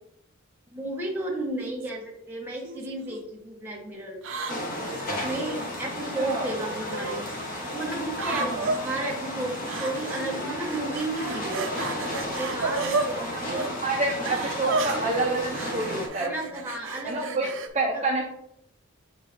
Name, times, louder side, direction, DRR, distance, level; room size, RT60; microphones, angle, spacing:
voice 1, 0.7-4.2 5.0-7.2 7.7-11.6 12.1-13.6 16.2-17.5 17.9-18.0, right 1 dB, 10° right, -4 dB, 1.4 m, -33 dB
sound 1, 1.6-1.9 2.6-3.2 4.2-5.6 6.6-7.2 8.1-8.8 9.7-10.3 10.6-13.1 13.5-13.7 14.2-17.7, right 3 dB, 65° right, 0.6 m, -32 dB
sound 2, 4.5-16.1, equal, 40° left, 1.3 m, -33 dB
voice 2, 6.1-6.5 8.3-8.7 13.2-13.5 13.8-16.3 17.0-18.3, right 2 dB, 35° right, -3 dB, 0.8 m, -28 dB
7.5 x 3.6 x 3.5 m, 0.76 s
head